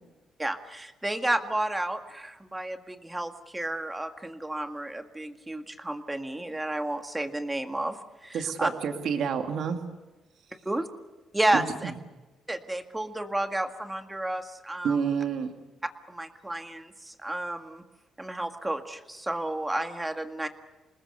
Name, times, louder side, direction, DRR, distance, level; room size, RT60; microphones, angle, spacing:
voice 1, 0.4-8.0 8.2-8.7 10.7-10.9 11.3-11.9 12.5-15.0 16.1-17.8 18.2-20.5, right 1 dB, 10° right, 6 dB, 1.8 m, -31 dB
voice 2, 8.3-9.8 11.5-11.6 14.8-15.5, right 7 dB, 70° right, 5 dB, 2.4 m, -28 dB
27.0 x 20.0 x 6.6 m, 1.1 s
cardioid pair, 90°, 0 cm